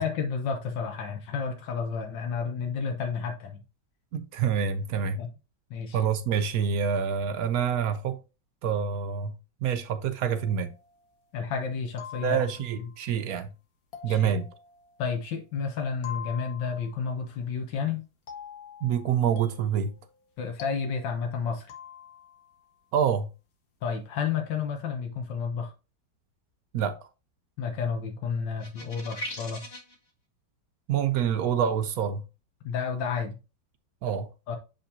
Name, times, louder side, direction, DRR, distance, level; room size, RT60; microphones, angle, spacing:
voice 1, 0.0-3.6 5.2-5.3 5.7-6.0 11.3-12.4 14.1-14.3 15.0-18.0 20.4-21.7 23.8-25.7 27.6-29.6 32.6-33.4 34.5-34.6, left 6 dB, 90° left, 1.7 m, -31 dB
voice 2, 4.1-5.2 5.9-8.2 8.6-10.7 12.2-13.5 14.0-14.5 18.8-20.0 22.9-23.3 26.7-27.0 30.9-32.2 34.0-34.3, right 7 dB, 70° right, 0.9 m, -27 dB
sound 1, 10.2-11.3 12.0-12.9 13.9-15.5 16.0-17.2 18.3-22.6, left 8 dB, 55° left, 1.4 m, -46 dB
sound 2, 28.6-29.9, equal, 35° left, 1.8 m, -38 dB
7.3 x 5.2 x 2.8 m
omnidirectional pair, 1.9 m